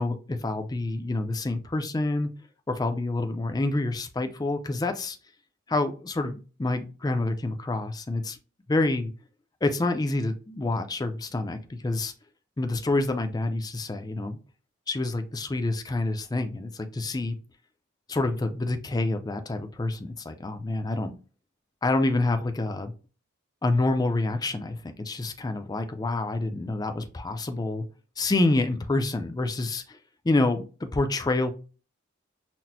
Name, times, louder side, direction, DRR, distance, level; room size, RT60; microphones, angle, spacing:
voice 1, 0.0-2.3 2.7-5.2 5.7-8.4 8.7-9.1 9.6-12.1 12.6-14.4 14.9-17.4 18.1-21.1 21.8-22.9 23.6-27.8 28.2-30.0 30.2-31.5, left 2 dB, 20° left, 0.4 m, -27 dB
5.9 x 2.0 x 2.7 m
head